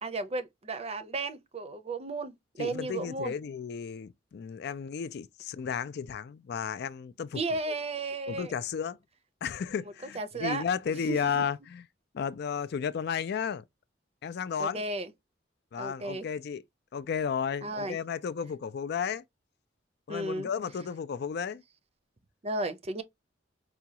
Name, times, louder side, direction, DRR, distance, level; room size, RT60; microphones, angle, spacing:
voice 1, 0.0-3.3 7.3-8.5 9.8-10.6 11.1-11.4 14.6-15.1 15.8-16.3 17.6-18.0 20.1-20.5 22.4-23.0, right 2 dB, 35° right, 0.6 m, -34 dB
voice 2, 2.6-7.4 8.3-9.0 9.4-11.8 12.1-13.6 14.2-14.8 15.7-16.6 16.9-19.2 20.1-21.6, left 7 dB, 60° left, 0.4 m, -33 dB
4.9 x 2.3 x 2.8 m
head